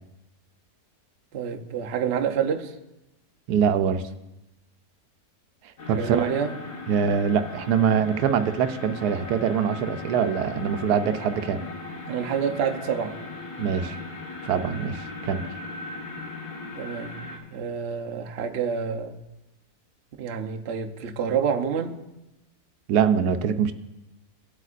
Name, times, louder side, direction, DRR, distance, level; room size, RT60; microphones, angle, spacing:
voice 1, 1.3-2.7 5.8-6.5 12.1-13.2 16.8-17.2 17.5-19.2 20.2-22.0, right 7 dB, 55° right, 4 dB, 0.8 m, -28 dB
voice 2, 3.5-4.0 5.9-6.3 6.9-11.6 13.6-14.0 14.4-15.4 22.9-23.7, right 7 dB, 85° right, 9 dB, 1.2 m, -23 dB
sound 1, 5.8-17.4, left 3 dB, 60° left, 1.9 m, -38 dB
17.5 x 8.0 x 2.5 m, 0.94 s
omnidirectional pair, 1.6 m